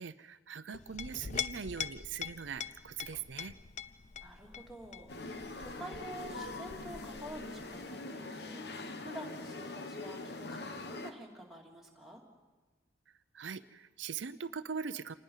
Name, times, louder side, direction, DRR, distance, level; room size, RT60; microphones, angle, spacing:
voice 1, 0.0-3.6 13.1-15.1, right 6 dB, 85° right, 12 dB, 0.6 m, -41 dB
Chink clink, 0.7-7.8, left 8 dB, 40° left, 0.6 m, -43 dB
voice 2, 4.2-12.2, right 1 dB, ahead, -3 dB, 2.7 m, -49 dB
sound 1, 5.1-11.1, left 2 dB, 60° left, 1.2 m, -43 dB
27.0 x 20.0 x 5.6 m, 1.3 s
head